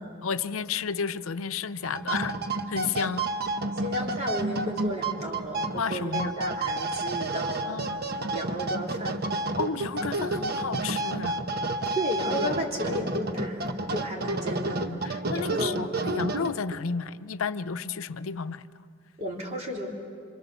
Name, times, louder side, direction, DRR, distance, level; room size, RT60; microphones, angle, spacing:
voice 1, 0.2-2.4 2.7-3.3 5.7-6.3 7.7-8.0 9.6-11.4 14.5-18.7, left 6 dB, 90° left, 13 dB, 0.6 m, -32 dB
sound 1, 1.8-16.8, right 2 dB, 50° right, 1.1 m, -30 dB
voice 2, 3.7-7.8 8.3-9.2 11.9-15.8 19.2-19.9, equal, 35° right, -1 dB, 3.5 m, -33 dB
27.0 x 26.0 x 7.0 m, 2.3 s
head